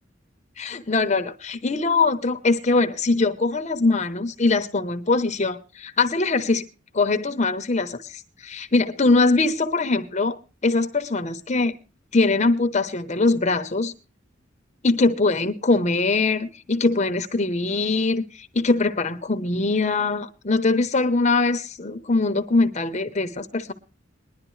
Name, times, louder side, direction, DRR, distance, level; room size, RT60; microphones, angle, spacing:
voice 1, 0.6-6.6 6.9-10.4 10.6-11.7 12.1-13.9 14.8-23.7, left 3 dB, 35° left, 8 dB, 0.9 m, -22 dB
20.5 x 11.0 x 3.2 m, 0.33 s
head